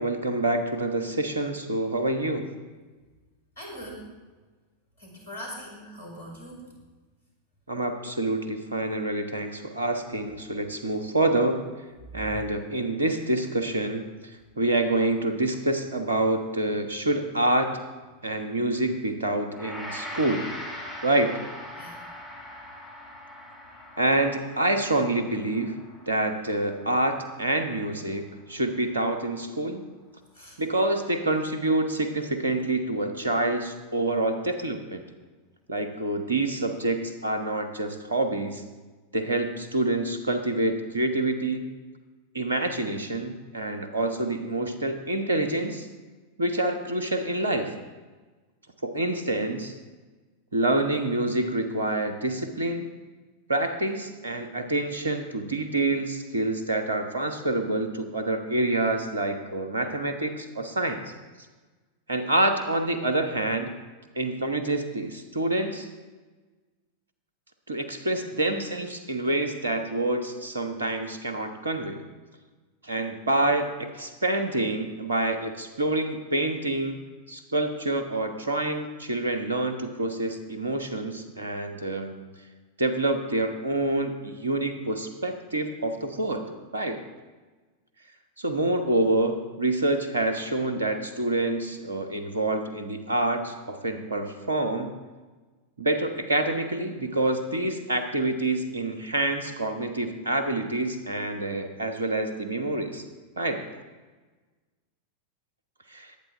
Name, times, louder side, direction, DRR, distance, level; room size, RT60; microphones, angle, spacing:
voice 1, 0.0-2.5 7.7-11.6 12.1-17.7 18.2-20.5 21.0-21.3 24.0-25.8 26.1-29.9 30.6-35.0 35.7-38.6 39.1-41.7 42.3-45.9 46.4-47.7 48.8-49.7 50.5-52.9 53.5-61.1 62.1-63.7 64.1-65.9 67.7-72.0 72.8-77.0 77.3-82.2 82.8-87.0 88.4-94.9 95.8-103.0 103.4-103.6 105.9-106.1, right 2 dB, 75° right, 7 dB, 1.2 m, -27 dB
voice 2, 3.6-4.0 5.0-6.6 21.8-22.0 30.3-30.6, equal, 65° left, -1 dB, 4.8 m, -41 dB
Gong, 19.5-28.9, left 1 dB, 5° right, 5.1 m, -42 dB
20.5 x 9.1 x 3.5 m, 1.3 s
figure-of-eight pair, 90°, 0 cm